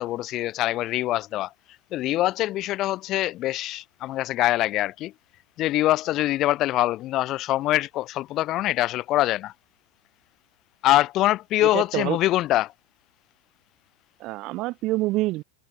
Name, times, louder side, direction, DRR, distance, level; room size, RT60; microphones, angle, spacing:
voice 1, 0.0-1.5 1.9-5.1 5.6-9.5 10.8-12.7, left 15 dB, 30° left, 7.3 m, -24 dB
voice 2, 11.6-12.2 14.2-15.4, right 19 dB, 35° right, 3.1 m, -27 dB
supercardioid pair, 155°, 0 cm